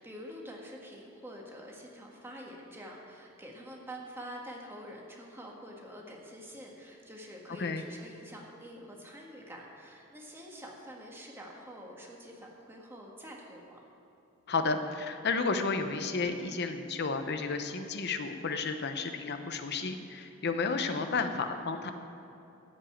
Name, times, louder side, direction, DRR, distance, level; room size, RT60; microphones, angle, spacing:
voice 1, 0.0-13.8, equal, 10° right, -1 dB, 1.7 m, -46 dB
voice 2, 14.5-21.9, left 4 dB, 55° left, 7 dB, 0.8 m, -32 dB
15.0 x 5.4 x 8.6 m, 2.7 s
head